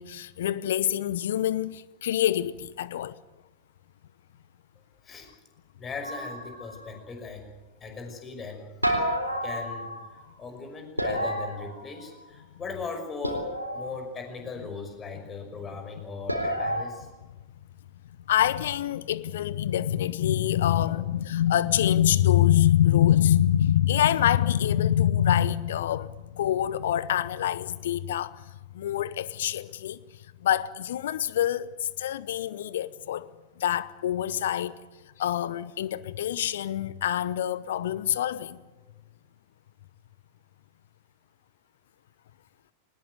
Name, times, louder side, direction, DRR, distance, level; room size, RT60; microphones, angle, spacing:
voice 1, 0.0-3.1 18.3-28.5 28.7-30.0 30.4-33.3 33.6-34.8 35.2-38.6, left 11 dB, 60° left, 0.7 m, -25 dB
voice 2, 5.8-7.4 7.8-8.7 9.1-13.5 13.7-17.1, left 4 dB, 20° left, 5.7 m, -39 dB
sound 1, 6.0-7.0 8.8-10.2 11.0-12.3 13.2-14.1 16.3-16.9, equal, 90° right, 3.7 m, -30 dB
21.0 x 19.5 x 9.4 m
figure-of-eight pair, 90°, 0 cm